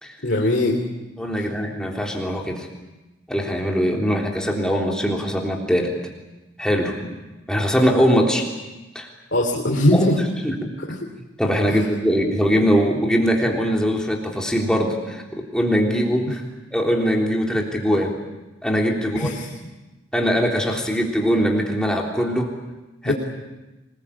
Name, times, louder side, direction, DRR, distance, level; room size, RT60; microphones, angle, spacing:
voice 1, 0.2-0.8 9.3-10.2 10.9-11.0 19.1-19.5 23.0-23.1, left 1 dB, 60° left, -2 dB, 3.2 m, -20 dB
voice 2, 1.2-2.7 3.3-5.9 6.6-7.1 7.5-8.5 9.0-9.1 9.9-10.0 10.4-10.7 11.4-16.4 16.7-18.2 18.6-19.3 20.1-22.5 23.0-23.1, equal, 5° left, -1 dB, 3.5 m, -21 dB
25.5 x 21.0 x 8.7 m, 1.1 s
head